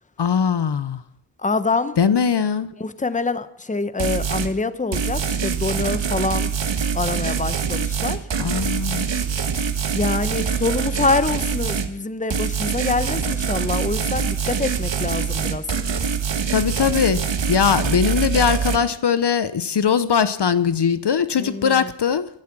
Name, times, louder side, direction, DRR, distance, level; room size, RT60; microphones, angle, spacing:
voice 1, 0.2-1.0 2.0-2.7 8.4-9.1 16.5-17.2 17.5-22.3, left 7 dB, 60° left, 14 dB, 0.8 m, -20 dB
voice 2, 1.4-2.0 2.8-6.5 6.9-8.2 9.9-15.6 21.4-21.9, left 3 dB, 15° left, 13 dB, 0.9 m, -25 dB
sound 1, 4.0-4.5 4.9-11.9 12.3-18.8, right 6 dB, 65° right, 1.5 m, -24 dB
16.5 x 12.0 x 6.1 m, 0.75 s
cardioid pair, 55°, 47 cm